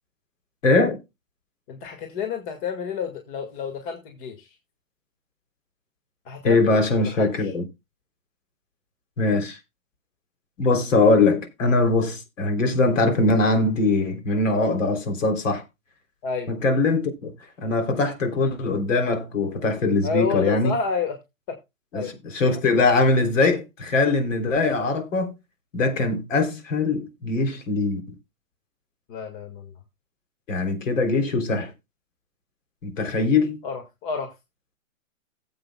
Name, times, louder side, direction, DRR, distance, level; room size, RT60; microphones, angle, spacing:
voice 1, 0.6-1.0 6.4-7.6 9.2-9.6 10.6-15.6 16.5-17.3 17.6-20.7 21.9-25.3 25.7-28.2 30.5-31.7 32.8-33.6, left 3 dB, 65° left, 3.5 m, -22 dB
voice 2, 1.7-4.5 6.3-6.6 7.1-7.3 16.2-16.5 20.0-21.2 21.5-21.6 21.9-22.1 29.1-29.7 33.6-34.3, left 6 dB, 40° left, 2.0 m, -29 dB
17.5 x 8.0 x 2.3 m
hypercardioid pair, 130°, 40 cm